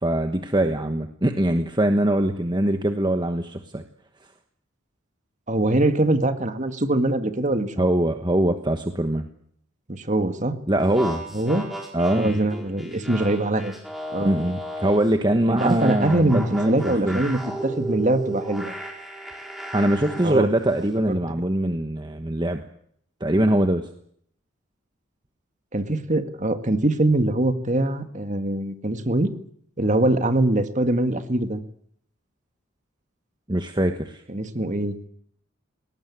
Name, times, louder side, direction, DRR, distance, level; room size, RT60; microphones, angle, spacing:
voice 1, 0.0-3.8 7.8-9.2 10.7-11.2 11.9-12.3 14.2-17.2 19.7-22.6 23.2-23.9 33.5-34.2, right 1 dB, 20° right, 6 dB, 1.2 m, -22 dB
voice 2, 5.5-7.9 9.9-10.6 11.3-11.7 12.1-13.7 14.1-14.3 15.5-18.7 20.2-20.5 21.1-21.2 25.7-29.3 29.8-31.6 34.3-35.0, right 1 dB, 35° right, 8 dB, 1.9 m, -23 dB
sound 1, 10.8-15.1 15.6-20.4, right 1 dB, ahead, 4.4 m, -34 dB
20.0 x 18.5 x 9.8 m, 0.67 s
head